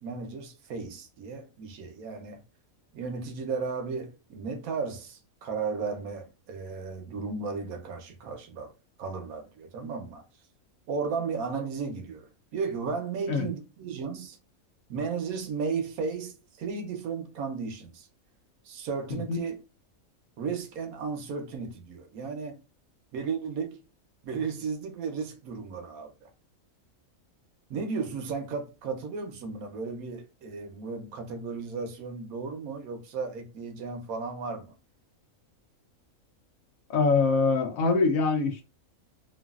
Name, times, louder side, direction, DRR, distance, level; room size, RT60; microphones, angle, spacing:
voice 1, 0.0-2.4 2.9-8.7 9.0-10.2 10.9-14.4 14.9-18.1 18.6-19.6 20.4-22.6 23.1-23.8 24.2-26.3 27.7-34.7, right 5 dB, 80° right, 1.2 m, -34 dB
voice 2, 36.9-38.6, left 4 dB, 70° left, 1.1 m, -24 dB
3.0 x 2.5 x 2.3 m
omnidirectional pair, 1.5 m